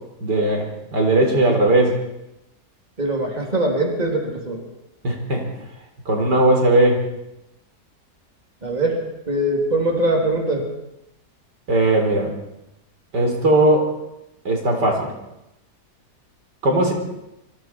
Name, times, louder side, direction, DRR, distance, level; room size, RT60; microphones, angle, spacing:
voice 1, 0.2-1.9 5.0-5.4 6.1-7.0 11.7-12.4 13.1-13.9 14.4-15.1 16.6-16.9, right 1 dB, 80° right, 2 dB, 4.6 m, -18 dB
voice 2, 3.0-4.6 8.6-9.0 9.3-10.6, right 1 dB, 25° right, 0 dB, 3.6 m, -22 dB
27.0 x 24.0 x 4.8 m, 0.89 s
omnidirectional pair, 1.8 m